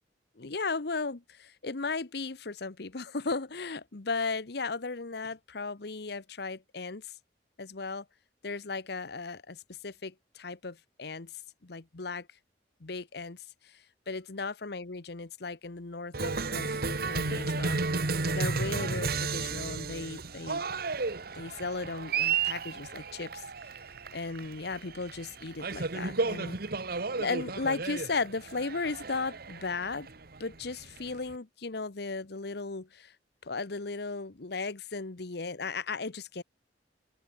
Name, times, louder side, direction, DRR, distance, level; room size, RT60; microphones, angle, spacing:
voice 1, 0.4-7.1 7.6-8.0 8.4-11.3 11.6-12.3 12.8-20.6 21.3-23.4 24.1-26.6 27.2-30.1 30.4-33.1 33.4-36.4, left 4 dB, 65° left, 1.1 m, -36 dB
Cheering, 16.1-31.3, right 4 dB, 60° right, 1.6 m, -33 dB
open air
head